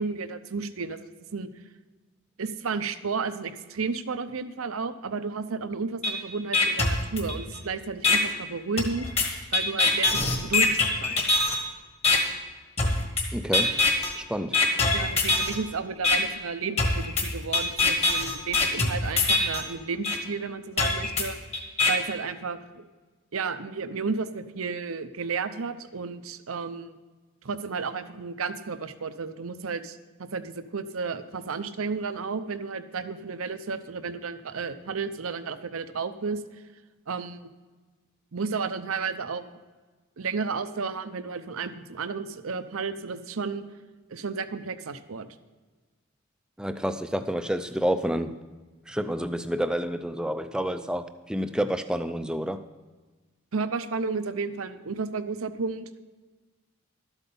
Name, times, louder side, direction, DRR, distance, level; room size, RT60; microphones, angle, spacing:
voice 1, 0.0-1.5 2.4-9.1 9.5-11.2 14.9-21.4 21.9-22.8 23.3-27.0 27.4-36.4 37.1-37.4 38.3-39.4 40.2-43.6 44.1-45.3 53.5-55.9, right 4 dB, 85° right, 11 dB, 0.7 m, -32 dB
sound 1, 6.0-6.1 6.5-7.6 8.0-8.2 8.8-11.6 12.0-12.2 12.8-13.2 13.5-14.1 14.5-15.6 16.0-16.2 16.8-19.6 20.0-20.2 20.8-21.9, left 3 dB, 30° left, 1.5 m, -23 dB
voice 2, 13.3-13.8 14.2-14.6 46.6-48.3 48.9-52.6, equal, 5° right, 10 dB, 0.4 m, -29 dB
12.5 x 8.2 x 5.4 m, 1.3 s
head